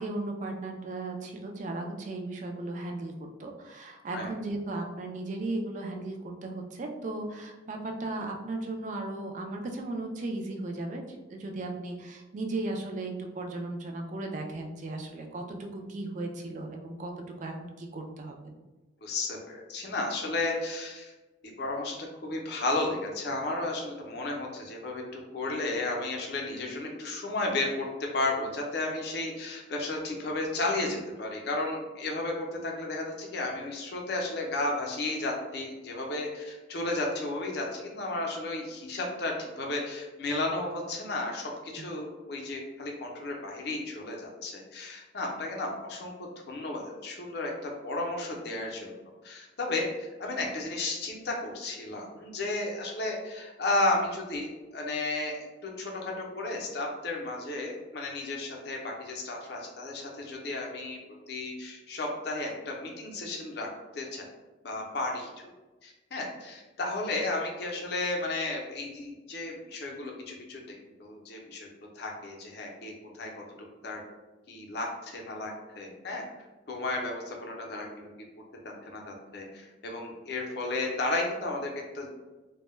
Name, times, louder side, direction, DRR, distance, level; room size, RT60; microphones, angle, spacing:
voice 1, 0.0-17.1 17.4-18.4 41.8-41.9, right 2 dB, 40° right, 3 dB, 0.3 m, -36 dB
voice 2, 19.0-21.1 21.4-22.0 22.2-27.9 28.1-46.1 46.5-48.9 49.2-61.0 61.3-63.7 63.9-64.2 64.6-65.3 65.8-70.6 71.0-71.7 72.0-73.3 73.8-74.0 74.5-76.2 76.7-78.1 78.8-82.1, left 2 dB, 55° left, 0 dB, 0.5 m, -33 dB
2.1 x 2.1 x 3.1 m, 1.2 s
head